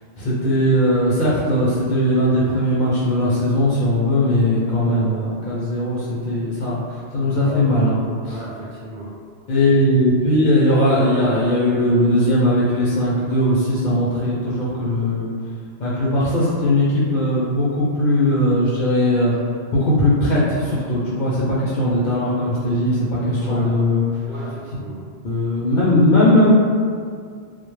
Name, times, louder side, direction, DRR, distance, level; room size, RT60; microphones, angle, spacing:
voice 1, 0.2-8.0 8.2-8.4 9.5-15.3 15.8-19.3 19.7-24.0 25.2-26.5, left 1 dB, 60° left, -8 dB, 0.5 m, -19 dB
voice 2, 7.2-7.8 8.3-9.1 23.3-23.7 24.3-25.0, equal, 55° right, -8 dB, 0.7 m, -34 dB
2.1 x 2.0 x 3.0 m, 2.1 s
omnidirectional pair, 1.1 m